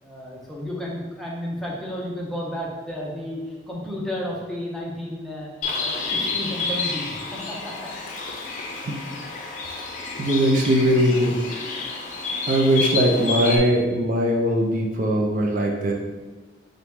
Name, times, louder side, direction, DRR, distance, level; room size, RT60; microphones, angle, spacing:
voice 1, 0.0-7.9, left 1 dB, ahead, -4 dB, 0.7 m, -32 dB
Bird, 5.6-13.6, left 4 dB, 45° left, 0.6 m, -29 dB
voice 2, 10.2-11.4 12.5-15.9, equal, 50° right, 0 dB, 0.5 m, -20 dB
3.9 x 2.9 x 3.5 m, 1.3 s
head